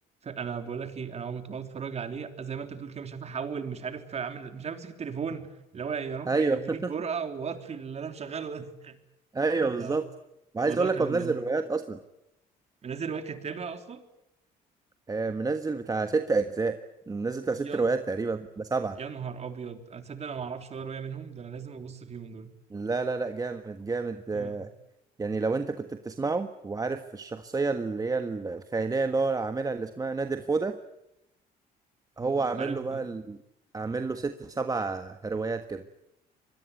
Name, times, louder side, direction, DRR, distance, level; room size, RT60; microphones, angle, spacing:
voice 1, 0.2-9.0 9.6-10.0 10.6-11.4 12.8-14.0 17.5-17.9 19.0-22.5 24.3-24.7 32.2-33.1, right 6 dB, 40° right, 7 dB, 3.5 m, -36 dB
voice 2, 6.3-6.9 9.3-10.1 10.5-12.0 15.1-16.8 17.1-19.0 22.7-24.7 25.2-30.8 32.2-33.4 33.7-35.8, right 3 dB, 20° right, 8 dB, 1.4 m, -29 dB
26.0 x 21.5 x 9.3 m, 0.87 s
cardioid pair, 110°, 17 cm